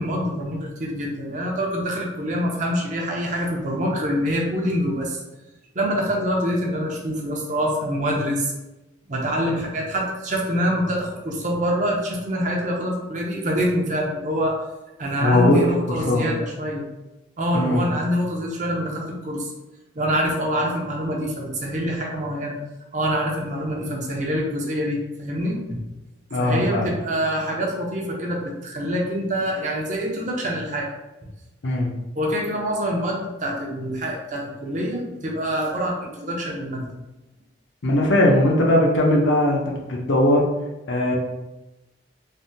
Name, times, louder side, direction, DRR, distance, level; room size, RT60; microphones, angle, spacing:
voice 1, 0.0-5.2 5.7-8.5 9.1-14.6 15.0-16.9 17.4-19.5 20.0-22.6 22.9-25.8 26.4-30.9 31.2-31.3 32.2-36.9, equal, 40° right, -1 dB, 0.5 m, -25 dB
voice 2, 15.2-16.3 17.5-17.8 26.3-26.8 31.6-31.9 37.8-40.4 40.9-41.2, left 1 dB, 80° left, -1 dB, 0.6 m, -19 dB
3.3 x 2.1 x 2.7 m, 0.99 s
head